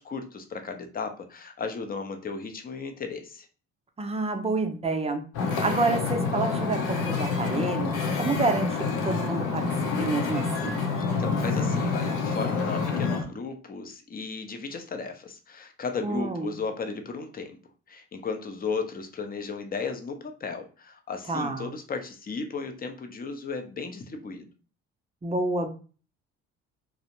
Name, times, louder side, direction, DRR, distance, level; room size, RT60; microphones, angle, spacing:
voice 1, 0.0-3.5 11.2-17.5 17.9-24.5, left 4 dB, 30° left, 6 dB, 0.6 m, -35 dB
voice 2, 4.0-5.2 5.6-9.6 10.0-10.8 16.0-16.6 21.3-21.7 25.2-25.7, right 3 dB, 20° right, 6 dB, 0.5 m, -28 dB
Wind / Ocean, 5.3-13.2, left 4 dB, 75° left, 0.7 m, -27 dB
2.4 x 2.0 x 2.9 m, 0.37 s
supercardioid pair, 70°, 31 cm